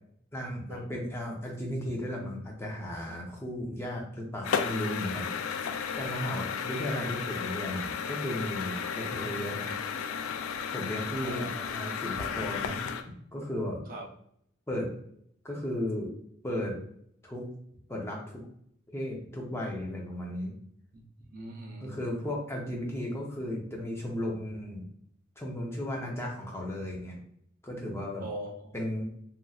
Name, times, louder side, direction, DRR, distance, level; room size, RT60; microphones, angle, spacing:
voice 1, 0.3-5.6 6.0-9.7 10.7-12.8 13.3-13.8 14.7-14.9 15.4-16.2 16.4-16.8 17.2-17.5 17.9-18.4 18.9-20.5 21.8-24.8 25.4-27.2 27.6-28.3 28.7-29.0, left 1 dB, 10° left, -2 dB, 0.6 m, -35 dB
sound 1, 4.4-13.0, left 6 dB, 80° left, 0.3 m, -34 dB
voice 2, 11.2-11.6 13.9-14.1 20.9-21.9 28.2-28.7, right 1 dB, 45° right, -1 dB, 0.6 m, -41 dB
3.0 x 2.6 x 2.3 m, 0.67 s
head